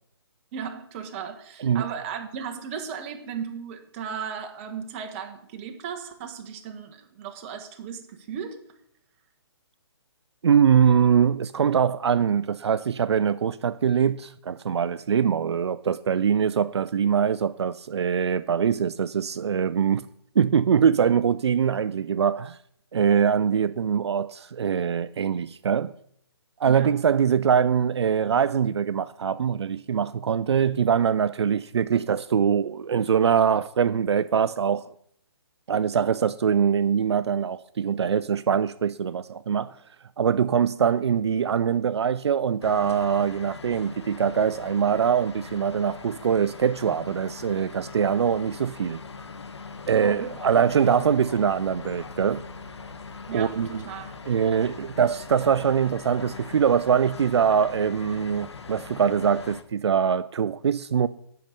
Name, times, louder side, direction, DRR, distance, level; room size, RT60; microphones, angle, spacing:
voice 1, 0.5-8.6 26.6-26.9 50.0-50.3 53.3-54.1, right 7 dB, 30° right, 1.2 m, -36 dB
voice 2, 10.4-20.1 20.4-22.6 22.9-25.9 26.6-34.8 35.7-39.8 40.2-49.0 49.9-52.4 53.3-53.8 54.3-61.1, right 7 dB, 75° right, 0.4 m, -23 dB
sound 1, 42.6-59.6, left 4 dB, 80° left, 1.2 m, -41 dB
9.0 x 5.8 x 6.6 m
hypercardioid pair, 150°, 14 cm